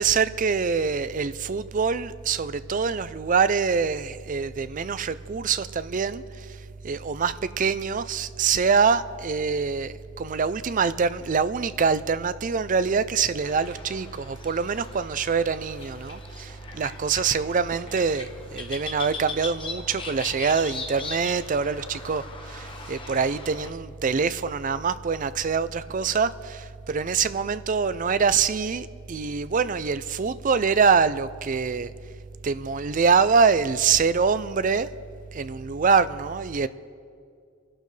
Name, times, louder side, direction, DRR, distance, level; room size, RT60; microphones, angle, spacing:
voice 1, 0.0-6.6 6.8-31.9 32.4-34.9 35.3-36.7, right 5 dB, 40° right, 0.4 m, -24 dB
sound 1, 13.4-23.7, left 3 dB, 25° left, 1.1 m, -40 dB
30.0 x 12.0 x 3.3 m
head